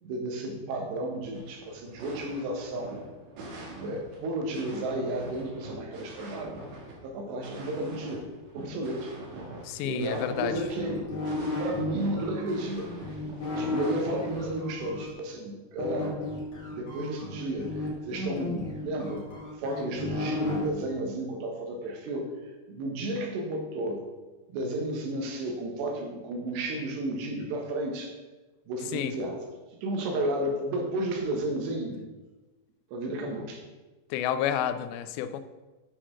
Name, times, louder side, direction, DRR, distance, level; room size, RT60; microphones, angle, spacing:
voice 1, 0.0-3.0 3.8-6.6 7.0-8.3 8.6-9.1 9.8-11.2 11.6-12.9 13.6-16.2 16.7-19.3 19.6-22.3 22.7-24.0 24.5-28.1 28.7-29.4 29.8-32.0 32.9-33.6, right 1 dB, 85° right, 2 dB, 3.6 m, -32 dB
sound 1, 1.3-14.9, right 2 dB, 55° right, 2.2 m, -44 dB
voice 2, 9.6-10.5 28.9-29.1 34.1-35.4, left 10 dB, 90° left, 11 dB, 2.9 m, -30 dB
sound 2, 10.3-15.1 15.8-20.7, left 2 dB, 35° left, 2.5 m, -34 dB
8.6 x 6.3 x 6.2 m, 1.2 s
omnidirectional pair, 4.9 m